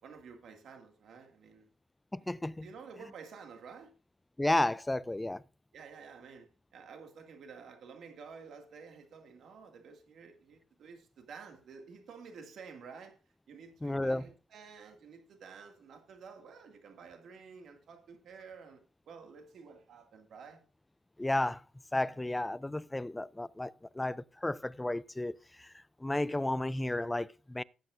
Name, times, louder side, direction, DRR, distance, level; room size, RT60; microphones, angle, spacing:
voice 1, 0.0-1.7 2.2-2.3 2.6-3.9 5.7-13.2 13.5-20.6, right 5 dB, 65° right, 2.0 m, -51 dB
voice 2, 2.1-2.7 4.4-5.4 13.8-14.2 21.2-21.6 21.9-25.3 25.6-25.7 26.0-27.6, left 1 dB, 10° left, 0.4 m, -32 dB
17.5 x 7.7 x 2.5 m
cardioid pair, 90°, 0 cm